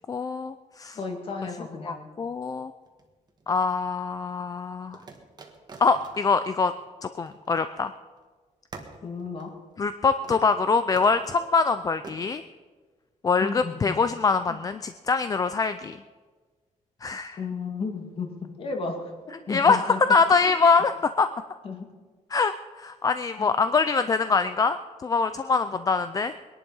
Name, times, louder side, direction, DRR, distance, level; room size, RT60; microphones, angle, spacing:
voice 1, 0.1-1.0 1.8-2.7 3.5-5.0 5.8-6.7 7.0-7.9 9.8-12.4 13.2-16.0 17.0-17.4 19.5-20.9 21.2-21.3 22.3-26.3, left 4 dB, 25° left, 11 dB, 0.4 m, -24 dB
voice 2, 1.0-2.1 9.0-9.5 13.4-14.0 14.5-14.6 17.4-18.3 18.6-19.1 19.5-20.0 20.4-20.5 21.6-21.9 23.4-23.5, left 4 dB, 45° left, 3 dB, 2.2 m, -33 dB
sound 1, 2.9-3.7 4.9-7.9 8.2-8.3 8.7-10.0 10.2-10.6 11.0-11.5 12.0-12.2, right 4 dB, 30° right, 1.6 m, -46 dB
20.5 x 11.0 x 5.5 m, 1.4 s
wide cardioid pair, 165°, 13 cm